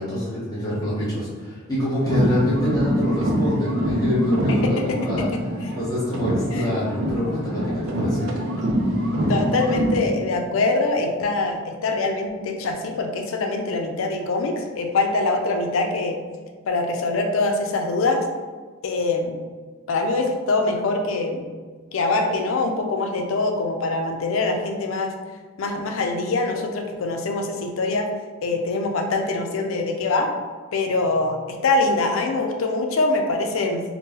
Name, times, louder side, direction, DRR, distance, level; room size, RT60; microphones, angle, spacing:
voice 1, 0.0-5.3 5.7-8.3, left 1 dB, 20° left, -10 dB, 1.1 m, -26 dB
sound 1, 2.0-5.8 6.1-10.1, equal, 85° right, 0.5 m, -24 dB
voice 2, 4.5-5.7 6.5-6.7 9.3-16.2 16.7-18.3 18.8-19.4 19.9-21.4 21.9-25.1 25.6-28.1 28.4-30.3 30.7-33.8, left 3 dB, 70° left, 3 dB, 0.4 m, -24 dB
2.8 x 2.2 x 3.6 m, 1.4 s
head